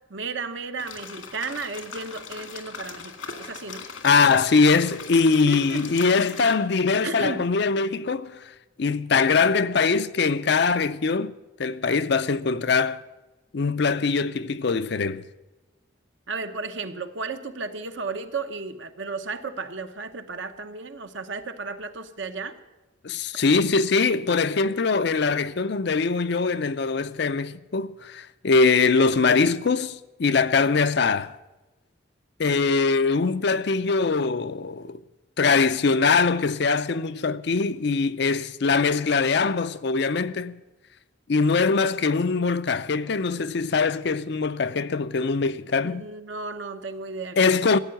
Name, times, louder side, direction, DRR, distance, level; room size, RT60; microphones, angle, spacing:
voice 1, 0.1-3.9 5.3-5.8 6.3-6.4 7.0-7.5 16.3-22.6 45.9-47.6, right 4 dB, 65° right, 1.0 m, -34 dB
sound 1, 0.8-6.6, left 5 dB, 85° left, 2.0 m, -39 dB
voice 2, 4.0-11.3 11.6-13.0 13.5-15.2 23.0-31.3 32.4-35.0 35.4-40.6 41.3-46.0 47.4-47.8, left 4 dB, 55° left, 0.5 m, -22 dB
14.0 x 8.6 x 9.0 m
head